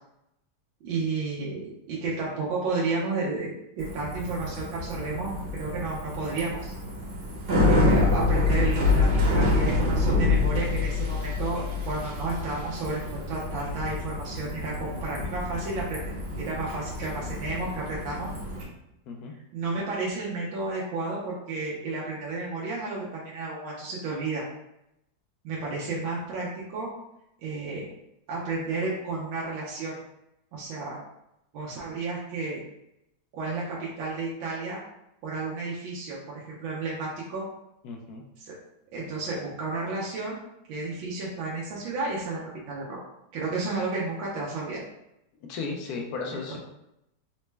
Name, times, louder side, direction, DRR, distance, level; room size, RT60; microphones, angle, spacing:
voice 1, 0.8-6.7 7.6-18.3 19.5-24.4 25.4-26.9 27.4-27.8 28.3-29.9 30.5-31.0 31.5-32.6 33.3-34.8 35.2-37.4 38.4-38.5 38.9-40.4 40.7-42.4 42.7-43.0 43.3-44.8 46.5-46.6, right 3 dB, 80° right, -5 dB, 1.5 m, -32 dB
Bicycle, 3.8-18.6, left 2 dB, 50° right, 1.1 m, -27 dB
voice 2, 37.8-38.2 45.5-46.6, left 4 dB, 70° left, 1 dB, 0.9 m, -35 dB
4.0 x 2.1 x 3.2 m, 0.84 s
omnidirectional pair, 2.1 m